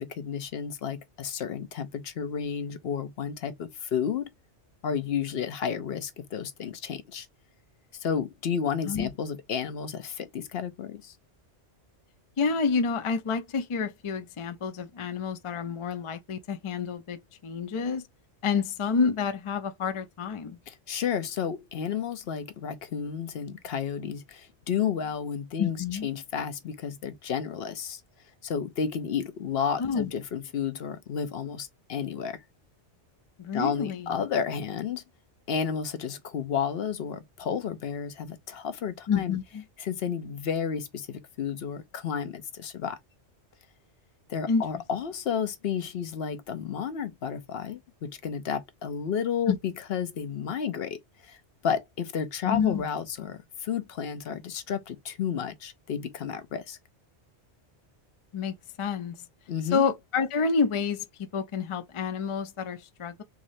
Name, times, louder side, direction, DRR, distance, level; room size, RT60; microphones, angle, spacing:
voice 1, 0.0-4.3 4.8-7.3 7.9-11.1 20.7-28.0 28.4-32.4 33.5-35.0 35.5-39.4 39.8-43.0 44.3-51.4 51.6-56.8 59.5-59.8, left 7 dB, 65° left, 0.8 m, -32 dB
voice 2, 12.4-18.0 18.4-20.6 25.6-26.1 29.8-30.1 33.4-34.2 39.1-39.6 44.5-44.6 49.5-49.6 52.5-52.8 58.3-59.2 59.7-63.2, left 5 dB, 45° left, 0.4 m, -28 dB
3.6 x 3.1 x 2.6 m
omnidirectional pair, 1.2 m